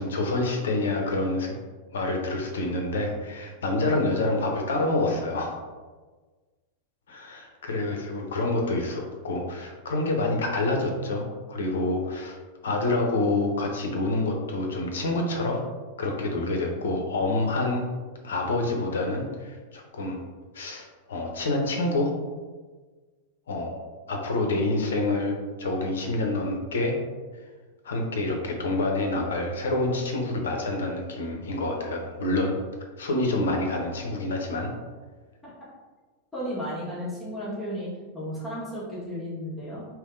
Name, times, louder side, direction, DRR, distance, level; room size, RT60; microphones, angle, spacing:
voice 1, 0.0-1.6 1.9-5.6 7.1-12.4 12.6-15.6 16.0-17.9 18.2-20.2 20.5-22.1 23.5-23.7 24.1-27.0 27.8-32.6 33.0-34.7, left 2 dB, 65° left, 2 dB, 0.7 m, -27 dB
voice 2, 36.3-37.9 38.1-39.9, equal, 5° left, -10 dB, 1.3 m, -33 dB
3.5 x 2.9 x 3.6 m, 1.3 s
figure-of-eight pair, 90°, 0 cm